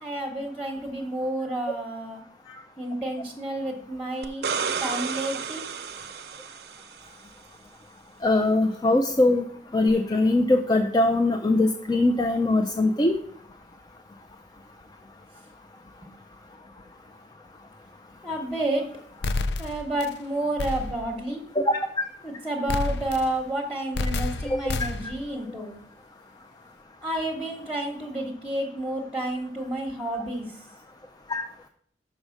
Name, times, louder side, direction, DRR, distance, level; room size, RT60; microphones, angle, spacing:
voice 1, 0.0-2.2 2.8-4.4 4.8-5.6 18.2-18.8 19.6-21.4 22.2-25.8 27.0-30.5, right 1 dB, ahead, -1 dB, 1.0 m, -30 dB
sound 1, 4.2-7.1 9.9-10.0, right 6 dB, 65° right, 0.5 m, -31 dB
voice 2, 8.2-9.4 9.7-13.1 21.6-21.8 24.4-24.6 31.3-31.4, left 2 dB, 25° left, 4 dB, 0.4 m, -21 dB
sound 2, 19.2-20.1 20.6-21.1 22.7-23.4 23.9-25.2, left 3 dB, 75° left, 0.5 m, -29 dB
6.3 x 4.8 x 6.4 m, 0.63 s
head